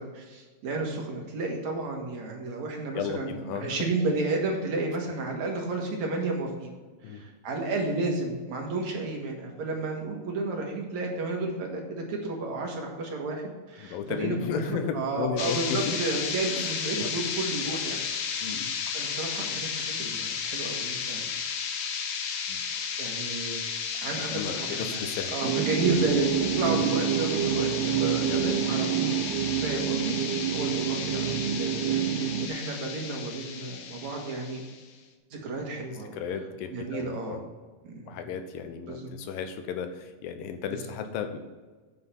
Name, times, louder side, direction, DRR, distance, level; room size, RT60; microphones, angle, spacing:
voice 1, 0.0-6.7 7.0-18.5 18.9-21.2 22.6-23.8 24.0-25.0 25.3-26.3 26.5-29.1 29.6-30.2 30.5-34.6 35.3-36.2 36.7-37.4 37.8-38.2 38.9-39.1 40.7-40.8, right 3 dB, 60° right, 0 dB, 2.7 m, -32 dB
voice 2, 2.9-3.8 7.0-7.2 13.8-16.0 16.5-16.7 17.0-17.1 18.4-18.7 22.5-22.6 24.3-25.4 28.3-28.7 30.6-30.7 36.1-37.4 38.1-41.4, left 7 dB, 90° left, 8 dB, 2.7 m, -34 dB
sound 1, 15.4-34.8, left 6 dB, 70° left, 2.3 m, -33 dB
sound 2, 25.4-32.5, right 10 dB, 80° right, 2.0 m, -28 dB
9.7 x 5.8 x 5.4 m, 1.4 s
omnidirectional pair, 3.9 m